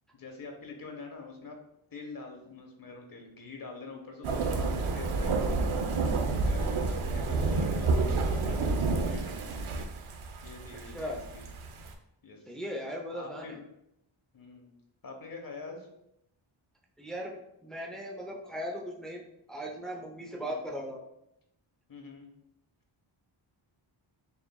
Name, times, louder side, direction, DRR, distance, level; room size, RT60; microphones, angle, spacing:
voice 1, 0.1-1.6 1.9-5.8 6.5-9.4 10.4-11.4 12.2-12.6 13.1-13.6 14.3-14.7 15.0-15.9 20.3-20.6 21.9-22.3, left 4 dB, 45° left, 3 dB, 0.9 m, -45 dB
sound 1, 4.2-11.9, right 3 dB, 75° right, 0.7 m, -29 dB
voice 2, 12.5-13.6 17.0-17.4 17.6-19.2 19.5-21.0, equal, ahead, 0 dB, 0.6 m, -38 dB
6.9 x 2.5 x 2.3 m, 0.80 s
wide cardioid pair, 100°, 49 cm